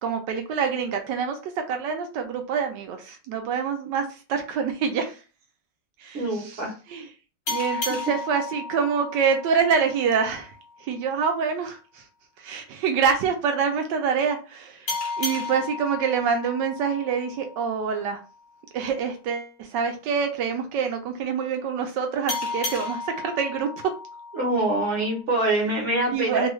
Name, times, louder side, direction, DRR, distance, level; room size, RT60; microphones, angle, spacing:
voice 1, 0.0-4.0 4.3-5.2 6.0-6.6 6.9-7.1 7.5-10.5 10.8-12.0 12.4-18.2 18.7-23.7 26.1-26.5, right 6 dB, 75° right, 5 dB, 1.0 m, -26 dB
voice 2, 6.1-6.7 7.7-7.8 24.3-26.5, right 2 dB, 50° right, -2 dB, 0.9 m, -25 dB
sound 1, 7.5-10.7 14.9-18.1 22.3-25.2, left 3 dB, 50° left, 1.0 m, -34 dB
3.3 x 2.3 x 3.0 m, 0.34 s
omnidirectional pair, 2.3 m